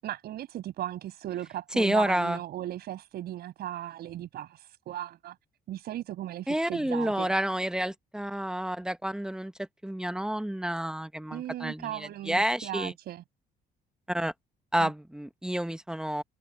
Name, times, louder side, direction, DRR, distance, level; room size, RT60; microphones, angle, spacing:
voice 1, 0.0-5.4 5.7-7.3 11.3-13.2 14.8-14.9, right 13 dB, 70° right, 7.3 m, -37 dB
voice 2, 1.8-2.4 6.5-12.9 14.1-14.3 14.7-16.2, right 1 dB, 5° right, 1.4 m, -29 dB
cardioid pair, 110°, 17 cm